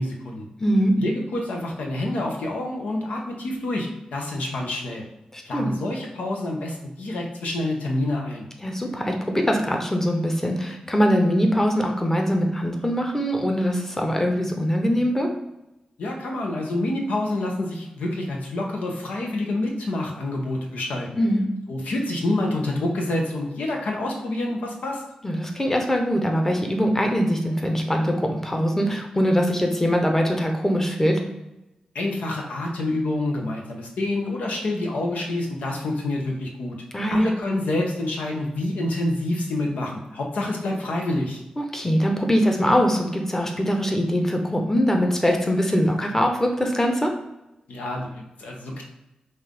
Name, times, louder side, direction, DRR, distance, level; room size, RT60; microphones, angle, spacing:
voice 1, 0.0-0.5 1.0-5.0 5.4-8.5 16.0-21.1 21.7-25.0 31.9-36.8 37.1-41.4 47.7-48.8, left 1 dB, 90° left, 0 dB, 0.8 m, -27 dB
voice 2, 0.6-0.9 5.3-5.7 8.6-15.3 21.2-21.4 25.2-31.2 36.9-37.3 41.6-47.1, equal, 15° left, 2 dB, 0.9 m, -22 dB
5.5 x 2.6 x 3.6 m, 0.93 s
cardioid pair, 55°, 2 cm